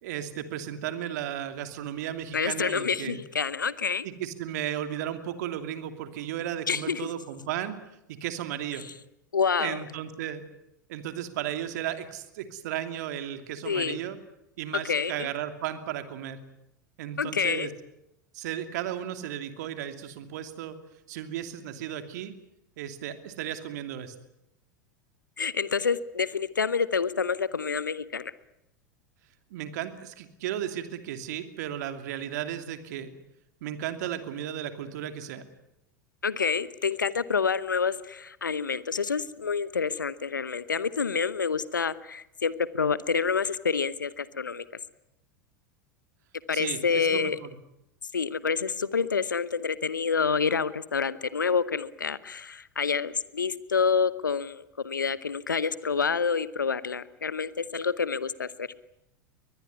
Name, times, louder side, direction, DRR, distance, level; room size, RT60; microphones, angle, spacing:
voice 1, 0.0-3.2 4.0-7.8 8.1-8.9 9.6-10.4 10.9-14.2 14.6-16.4 17.0-17.7 18.3-20.8 21.1-22.3 22.8-24.1 29.5-33.1 33.6-35.5 46.5-47.5, right 11 dB, 60° right, 8 dB, 2.8 m, -34 dB
voice 2, 2.3-4.1 6.7-7.1 9.3-9.8 13.6-14.0 14.9-15.3 17.2-17.7 25.4-28.3 36.2-44.6 46.5-47.4 48.1-58.7, left 5 dB, 85° left, 17 dB, 0.9 m, -28 dB
22.5 x 21.0 x 9.6 m, 0.85 s
figure-of-eight pair, 85°, 10 cm